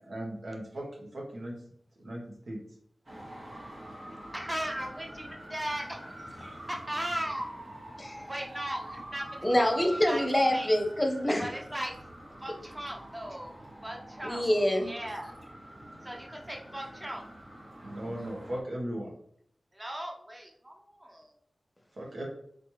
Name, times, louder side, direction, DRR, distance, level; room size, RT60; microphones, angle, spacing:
voice 1, 0.1-1.5 2.0-2.6 17.8-19.1 21.9-22.3, right 1 dB, 75° right, -2 dB, 1.4 m, -37 dB
Traffic noise roadway noise, 3.1-18.6, right 1 dB, 50° right, 1.4 m, -46 dB
voice 2, 4.3-7.5 8.2-10.2 10.5-10.7 11.4-11.9 12.4-13.5 13.8-14.4 14.8-15.3 16.0-17.2 19.7-21.3, right 1 dB, 20° right, 1 dB, 0.8 m, -38 dB
voice 3, 9.4-11.4 14.2-14.9, equal, 25° left, 3 dB, 0.8 m, -26 dB
4.1 x 3.2 x 3.1 m, 0.66 s
cardioid pair, 45°, 0 cm